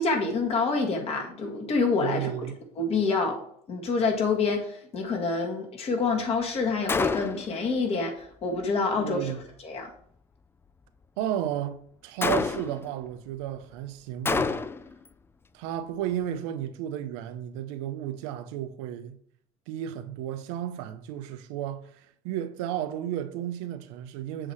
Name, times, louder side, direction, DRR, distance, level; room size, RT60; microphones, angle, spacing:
voice 1, 0.0-2.3 2.8-3.4 3.7-9.3 9.6-9.9, left 4 dB, 45° left, 1.9 m, -27 dB
voice 2, 2.0-2.5 9.0-9.4 11.2-14.7 15.5-19.2 19.7-24.5, right 11 dB, 85° right, 0.7 m, -33 dB
Gunshot gunfire, 6.9-7.6 12.2-12.9 14.3-14.9, left 4 dB, 15° left, 0.3 m, -27 dB
7.6 x 3.2 x 6.3 m
supercardioid pair, 100°, 14 cm